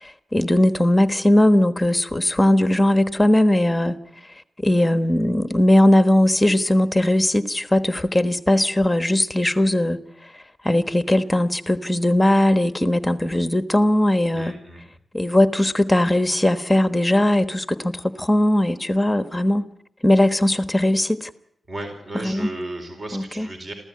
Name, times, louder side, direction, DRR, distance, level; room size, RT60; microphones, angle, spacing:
voice 1, 0.0-4.0 4.6-10.0 10.6-14.5 15.1-19.7 20.0-21.3 22.2-22.5 23.1-23.5, left 1 dB, 10° left, 1.3 m, -19 dB
voice 2, 14.3-14.8 21.7-23.7, right 2 dB, 35° right, 4.4 m, -34 dB
27.5 x 15.5 x 9.6 m
wide cardioid pair, 140°, 0 cm